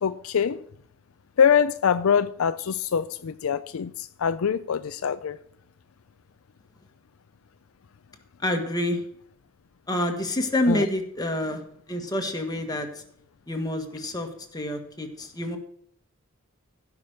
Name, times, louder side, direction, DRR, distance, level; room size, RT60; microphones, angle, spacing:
voice 1, 0.0-0.6 1.4-5.4 10.7-10.9, left 7 dB, 75° left, 0.4 m, -24 dB
voice 2, 8.4-9.0 9.9-11.6 11.9-12.9 13.5-15.6, left 1 dB, 20° left, 1.6 m, -27 dB
16.0 x 6.0 x 6.5 m
head